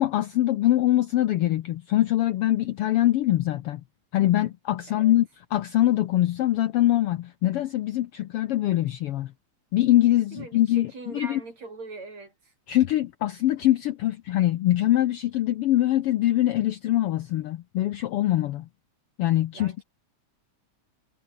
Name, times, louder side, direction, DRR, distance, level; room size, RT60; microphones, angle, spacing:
voice 1, 0.0-3.8 4.1-9.3 9.7-11.4 12.7-18.7 19.2-19.8, left 14 dB, 85° left, 1.3 m, -23 dB
voice 2, 10.3-12.3 19.5-19.8, right 3 dB, 55° right, 8.7 m, -41 dB
omnidirectional pair, 3.6 m